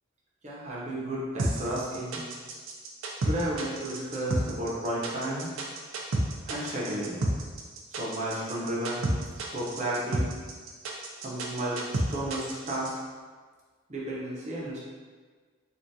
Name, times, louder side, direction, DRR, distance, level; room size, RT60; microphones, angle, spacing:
voice 1, 0.4-2.2 3.2-5.5 6.5-7.2 7.9-9.1 9.5-10.3 11.2-13.0 13.9-14.8, right 1 dB, 35° right, -6 dB, 0.7 m, -32 dB
sound 1, 1.4-12.9, right 1 dB, 90° right, 0.5 m, -30 dB
3.4 x 2.4 x 2.7 m, 1.5 s
head